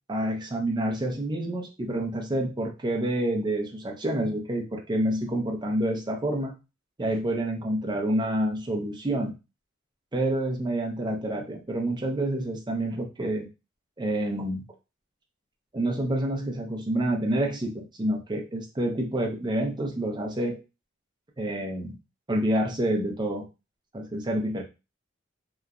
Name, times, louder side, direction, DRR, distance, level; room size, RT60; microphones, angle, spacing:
voice 1, 0.1-6.5 7.0-9.3 10.1-13.5 14.0-14.6 15.7-20.6 21.4-22.0 22.3-23.4 23.9-24.6, right 1 dB, 25° right, 1 dB, 0.6 m, -28 dB
2.9 x 2.3 x 2.4 m, 0.27 s
head